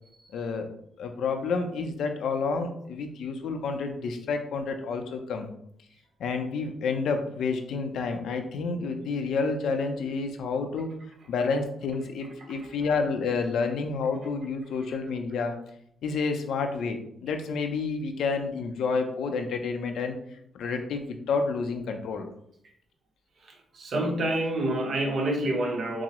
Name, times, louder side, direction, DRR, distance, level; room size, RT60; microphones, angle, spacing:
voice 1, 0.3-0.7 1.0-5.5 6.2-10.9 11.3-15.6 16.0-22.3, left 4 dB, 80° left, 5 dB, 0.5 m, -29 dB
voice 2, 23.4-26.0, right 1 dB, 60° right, 2 dB, 0.9 m, -28 dB
5.9 x 2.0 x 3.0 m, 0.71 s
cardioid pair, 85°, 0 cm